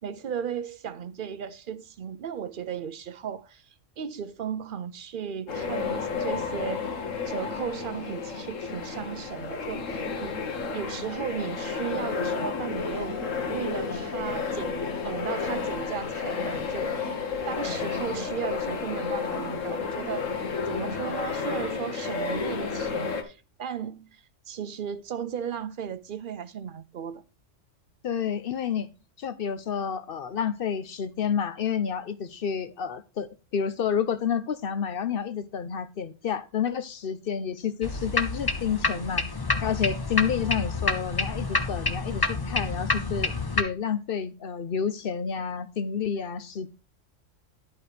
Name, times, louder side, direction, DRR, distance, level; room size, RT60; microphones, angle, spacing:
voice 1, 0.0-3.6 4.0-6.9 7.3-10.4 10.7-13.2 13.5-17.1 17.5-27.2, right 8 dB, 50° right, 0.7 m, -35 dB
sound 1, 5.5-23.2, left 5 dB, 85° left, 1.5 m, -31 dB
voice 2, 28.0-28.9 29.2-39.3 39.6-46.7, left 7 dB, 55° left, 0.8 m, -29 dB
sound 2, 37.8-43.6, left 3 dB, 20° left, 0.7 m, -28 dB
11.0 x 4.7 x 5.0 m
omnidirectional pair, 1.3 m